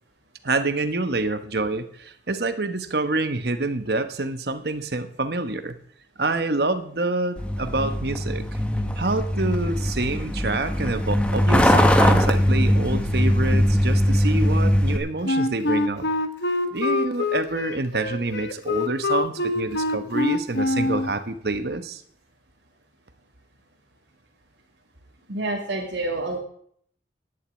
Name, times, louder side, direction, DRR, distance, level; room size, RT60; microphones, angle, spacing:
voice 1, 0.4-5.8 6.2-8.6 9.0-16.1 16.7-22.0, right 2 dB, 60° right, 10 dB, 1.1 m, -27 dB
Truck, 7.4-15.0, equal, 5° left, 1.0 m, -21 dB
Wind instrument woodwind instrument, 15.2-21.1, left 2 dB, 70° left, 1.2 m, -25 dB
voice 2, 25.3-26.4, right 2 dB, 85° right, -2 dB, 2.3 m, -28 dB
11.0 x 7.0 x 8.7 m, 0.63 s
head